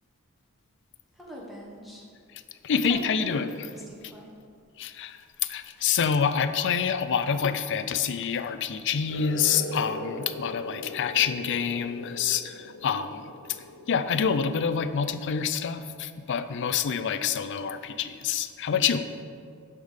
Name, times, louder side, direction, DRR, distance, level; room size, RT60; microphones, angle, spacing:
voice 1, 1.1-2.1 3.0-4.3, equal, ahead, -4 dB, 1.1 m, -42 dB
voice 2, 2.6-3.5 4.8-13.3 13.9-19.1, left 7 dB, 55° left, 11 dB, 0.4 m, -27 dB
sound 1, 9.1-15.2, left 2 dB, 80° left, 1.0 m, -40 dB
9.9 x 3.6 x 6.5 m, 2.3 s
head